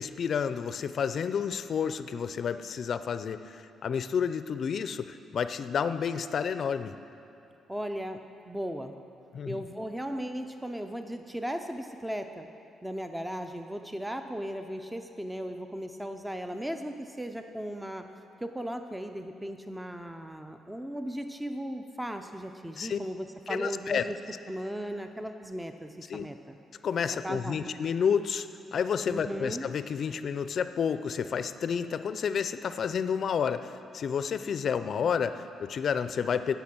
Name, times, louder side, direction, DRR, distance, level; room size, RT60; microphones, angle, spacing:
voice 1, 0.0-6.9 9.3-9.6 22.8-23.0 23.5-24.0 26.1-26.3 26.8-36.5, left 7 dB, 55° left, 12 dB, 0.5 m, -30 dB
voice 2, 7.7-8.2 8.4-8.9 9.5-12.5 12.8-18.1 18.4-24.2 24.5-26.6 27.2-27.7 29.1-29.7, equal, 5° right, 6 dB, 0.6 m, -36 dB
16.0 x 5.8 x 6.2 m, 2.9 s
cardioid pair, 90°, 0 cm